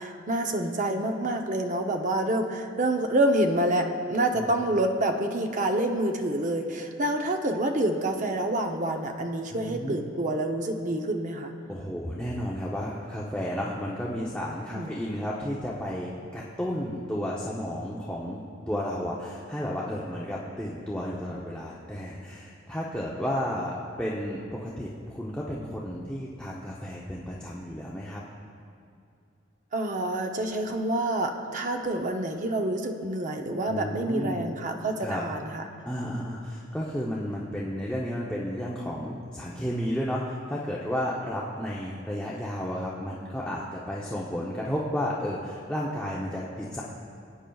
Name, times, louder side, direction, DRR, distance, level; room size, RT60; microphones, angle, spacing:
voice 1, 0.0-11.5 14.7-15.0 29.7-35.6, right 1 dB, 40° right, 4 dB, 0.6 m, -27 dB
voice 2, 9.5-10.0 11.7-28.2 33.7-34.5 35.0-35.2 35.8-46.8, equal, 5° left, -6 dB, 0.6 m, -32 dB
18.5 x 8.9 x 2.3 m, 2.4 s
head